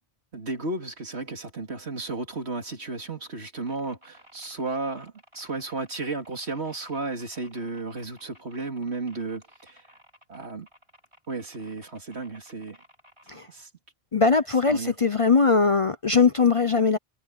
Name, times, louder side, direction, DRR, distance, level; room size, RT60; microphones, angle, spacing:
voice 1, 0.3-9.8 10.3-10.7 11.3-12.8 13.5-13.7 14.7-14.9, right 3 dB, 75° right, 3.0 m, -33 dB
sound 1, 3.6-13.4, equal, 25° right, 6.4 m, -56 dB
voice 2, 14.1-17.0, left 5 dB, 40° left, 0.6 m, -20 dB
omnidirectional pair, 1.1 m